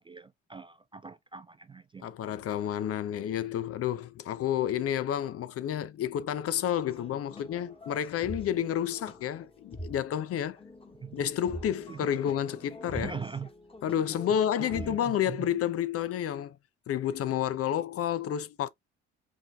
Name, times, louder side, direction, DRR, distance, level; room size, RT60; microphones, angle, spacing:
voice 1, 0.0-2.1 11.0-11.2 11.9-12.1 12.9-13.5 14.3-15.5, right 5 dB, 15° right, 0.3 m, -41 dB
voice 2, 2.0-10.6 11.1-13.1 13.8-16.6 16.9-18.7, left 10 dB, 45° left, 0.5 m, -30 dB
sound 1, 6.9-15.2, equal, 15° left, 1.4 m, -45 dB
5.0 x 3.2 x 2.3 m
hypercardioid pair, 50°, 34 cm